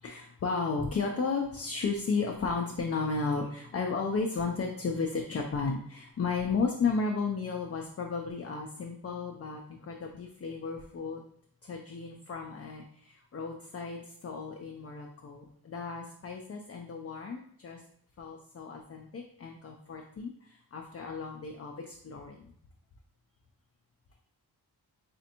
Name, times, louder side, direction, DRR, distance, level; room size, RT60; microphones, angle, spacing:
voice 1, 0.0-11.2 11.6-17.8 18.2-22.4, left 4 dB, 40° left, 2 dB, 0.4 m, -34 dB
4.2 x 2.5 x 2.8 m, 0.65 s
wide cardioid pair, 90°, 40 cm